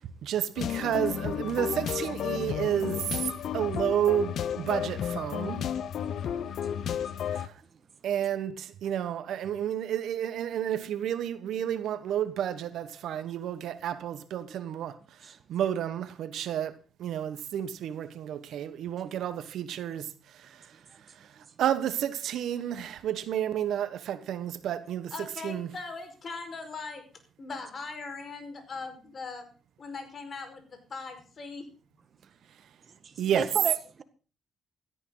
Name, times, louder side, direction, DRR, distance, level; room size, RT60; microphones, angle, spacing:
voice 1, 0.2-3.3 3.5-5.7 7.3-7.5 8.0-15.0 15.2-20.7 21.6-25.7 33.2-33.5, right 10 dB, 75° right, 1.4 m, -31 dB
sound 1, 0.6-7.5, left 9 dB, 65° left, 1.0 m, -32 dB
voice 2, 25.1-27.0 27.4-29.5 29.8-31.6, left 4 dB, 45° left, 5.1 m, -40 dB
voice 3, 32.8-34.0, right 6 dB, 45° right, 1.7 m, -35 dB
17.0 x 13.5 x 4.0 m
cardioid pair, 90°, 0 cm